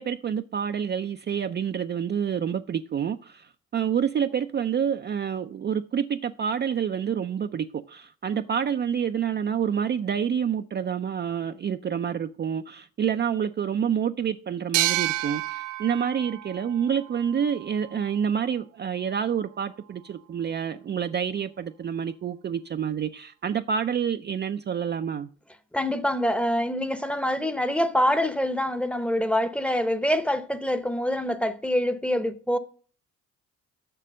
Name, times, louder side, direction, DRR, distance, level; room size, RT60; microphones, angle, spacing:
voice 1, 0.0-25.3, right 8 dB, 35° right, 0.4 m, -28 dB
sound 1, 14.7-18.1, right 15 dB, 90° right, 0.6 m, -30 dB
voice 2, 25.7-32.6, equal, 5° left, 0.8 m, -25 dB
6.8 x 6.2 x 7.4 m
cardioid pair, 90°, 30 cm